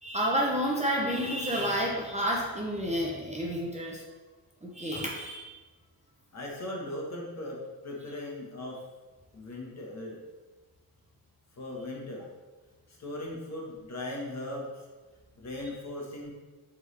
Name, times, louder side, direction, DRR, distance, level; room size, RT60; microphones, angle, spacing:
voice 1, 0.0-4.0 4.6-5.5, equal, 20° right, -3 dB, 0.6 m, -30 dB
voice 2, 6.3-8.8 9.3-10.2 11.6-12.3 12.9-14.9 15.4-16.3, left 1 dB, 40° left, -2 dB, 1.3 m, -38 dB
8.0 x 3.7 x 3.3 m, 1.3 s
wide cardioid pair, 175°, 39 cm